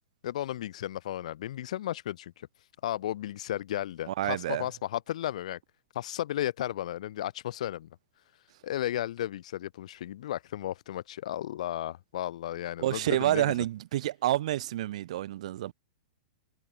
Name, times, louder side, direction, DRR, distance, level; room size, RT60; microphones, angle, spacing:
voice 1, 0.2-2.3 2.8-5.6 5.9-7.9 8.6-13.5, left 12 dB, 65° left, 0.5 m, -34 dB
voice 2, 4.1-4.7 12.8-15.7, right 14 dB, 65° right, 0.6 m, -28 dB
hypercardioid pair, 115°, 4 cm